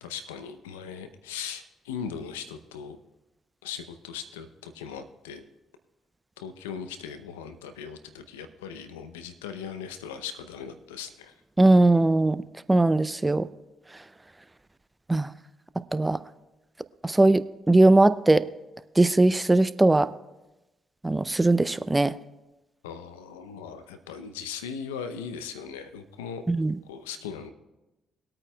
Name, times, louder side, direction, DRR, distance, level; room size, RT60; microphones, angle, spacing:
voice 1, 0.0-3.0 3.6-5.5 6.4-11.3 22.8-26.4 26.8-27.5, left 7 dB, 90° left, 10 dB, 0.6 m, -39 dB
voice 2, 11.6-12.4 12.7-13.5 15.1-15.3 15.9-16.2 17.0-18.5 19.0-20.1 21.0-22.1 26.5-26.7, right 2 dB, 20° right, 15 dB, 0.5 m, -20 dB
20.5 x 8.8 x 2.3 m, 1.0 s
hypercardioid pair, 45°, 0 cm